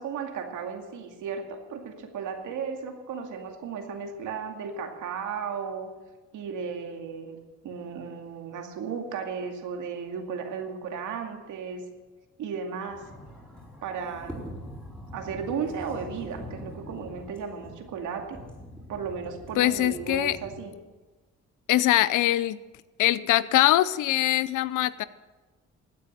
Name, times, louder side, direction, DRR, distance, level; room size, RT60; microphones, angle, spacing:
voice 1, 0.0-5.9 6.3-7.4 7.6-11.9 12.4-13.1 13.8-14.5 15.1-18.4 18.9-20.7, right 6 dB, 80° right, 4 dB, 2.3 m, -35 dB
sound 1, 12.9-20.6, equal, 5° left, 4.5 m, -43 dB
voice 2, 19.6-20.4 21.7-22.6 23.0-25.0, left 14 dB, 85° left, 17 dB, 0.7 m, -22 dB
16.0 x 9.4 x 6.7 m, 1.3 s
cardioid pair, 90°, 30 cm